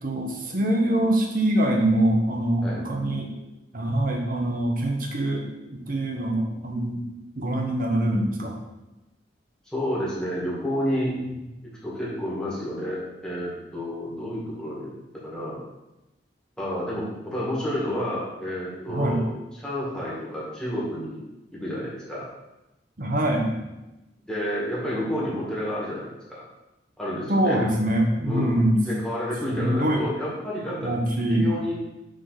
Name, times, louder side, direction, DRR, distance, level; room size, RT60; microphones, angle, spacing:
voice 1, 0.0-3.3 3.7-7.1 7.4-8.6 11.2-11.4 18.9-19.2 23.0-23.6 27.3-28.8 29.5-30.0 30.8-31.5, right 1 dB, 50° right, 1 dB, 1.0 m, -24 dB
voice 2, 9.6-11.2 11.8-14.9 15.2-15.6 16.6-19.3 19.6-21.2 21.5-22.3 24.2-26.4 27.0-27.6 28.2-30.9 31.3-31.7, equal, 5° left, -8 dB, 2.0 m, -30 dB
6.4 x 3.9 x 4.0 m, 0.99 s
head